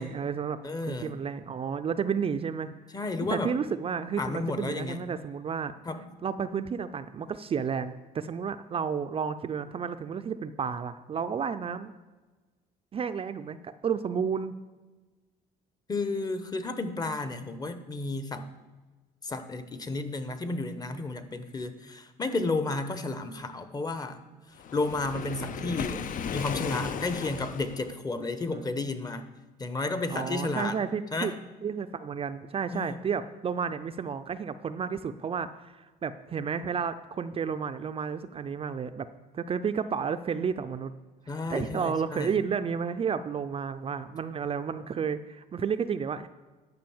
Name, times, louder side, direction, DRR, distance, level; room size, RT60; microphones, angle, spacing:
voice 1, 0.0-0.6 0.9-2.7 3.3-5.7 6.2-11.9 12.9-14.5 28.2-28.3 28.5-28.6 30.1-31.3 31.6-39.1 39.3-40.9 41.3-46.3, right 6 dB, 35° right, 10 dB, 0.5 m, -31 dB
voice 2, 0.6-1.1 2.9-3.6 4.2-5.0 5.8-6.1 15.9-18.4 19.2-24.2 24.7-26.1 26.3-29.2 29.6-30.8 31.1-31.3 32.7-33.0 41.3-42.3, left 3 dB, 25° left, 10 dB, 0.9 m, -32 dB
Waves surf, 24.6-27.9, left 8 dB, 50° left, 0.6 m, -35 dB
10.5 x 5.3 x 7.1 m, 1.3 s
cardioid pair, 110°, 17 cm